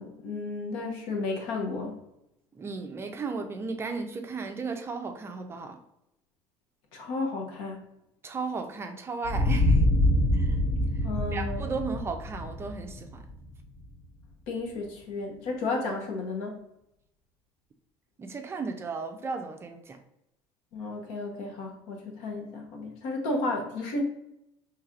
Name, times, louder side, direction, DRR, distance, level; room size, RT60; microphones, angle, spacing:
voice 1, 0.0-2.0 6.9-7.8 11.0-11.7 14.5-16.5 20.7-24.0, left 3 dB, 75° left, 1 dB, 1.0 m, -33 dB
voice 2, 2.5-5.8 8.2-9.8 10.3-10.6 10.9-13.3 18.2-20.0, right 4 dB, 25° right, 5 dB, 0.4 m, -35 dB
sound 1, 9.2-13.8, left 1 dB, 35° left, 0.8 m, -25 dB
4.4 x 3.1 x 2.5 m, 0.83 s
cardioid pair, 130°, 11 cm